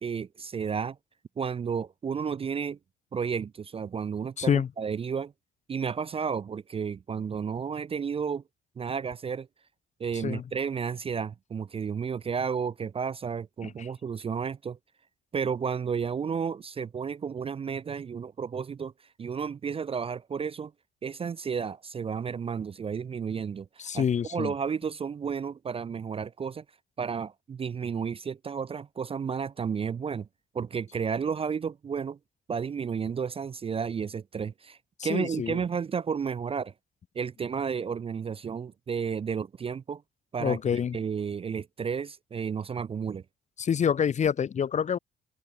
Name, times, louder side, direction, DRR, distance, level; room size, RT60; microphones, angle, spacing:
voice 1, 0.0-1.0 1.4-2.8 3.1-5.3 5.7-8.4 8.8-9.5 10.0-14.8 15.3-18.9 19.2-20.7 21.0-24.1 24.3-26.6 27.0-30.3 30.5-32.2 32.5-36.7 37.2-40.0 40.3-43.2, right 6 dB, 30° right, 0.4 m, -32 dB
voice 2, 4.4-4.7 10.2-10.4 13.6-13.9 23.8-24.5 35.0-35.6 40.4-41.0 43.6-45.0, left 7 dB, 35° left, 0.5 m, -27 dB
open air
cardioid pair, 90°, 20 cm